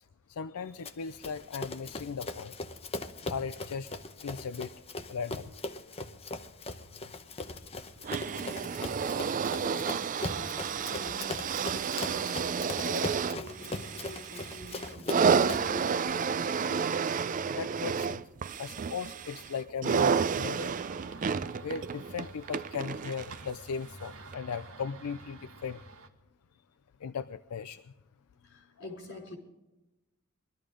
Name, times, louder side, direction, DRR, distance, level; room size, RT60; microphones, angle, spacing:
voice 1, 0.3-2.6 3.3-3.9 4.2-4.7 5.1-5.5 7.6-8.3 12.9-13.0 17.5-18.2 18.6-20.8 21.6-25.8 27.0-27.8, left 6 dB, 80° left, 11 dB, 0.5 m, -38 dB
Run, 0.8-15.8, left 2 dB, 30° left, 0.8 m, -40 dB
sound 1, 8.0-23.5 24.3-24.4, right 6 dB, 35° right, 0.4 m, -31 dB
voice 2, 8.2-11.7 12.1-16.5 26.3-26.4 28.3-29.4, left 1 dB, 55° left, 1 dB, 4.9 m, -48 dB
sound 2, 19.8-26.1, right 2 dB, 75° right, 1.4 m, -49 dB
21.5 x 13.0 x 3.8 m, 1.0 s
head